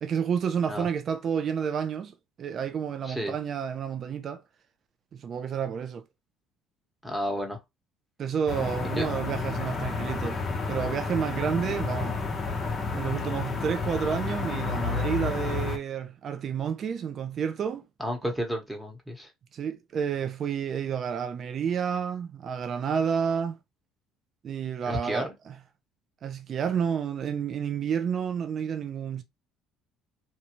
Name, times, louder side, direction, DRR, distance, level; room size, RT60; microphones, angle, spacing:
voice 1, 0.0-4.4 5.1-6.0 8.2-10.4 10.7-12.2 12.9-17.8 19.5-23.6 24.4-25.6 26.2-29.2, right 7 dB, 45° right, 0.5 m, -30 dB
voice 2, 7.0-7.6 9.0-9.1 18.0-19.3 24.8-25.3, equal, ahead, 1.1 m, -31 dB
sound 1, 8.5-15.8, left 4 dB, 30° left, 0.8 m, -31 dB
2.7 x 2.3 x 2.9 m
cardioid pair, 100°, 0 cm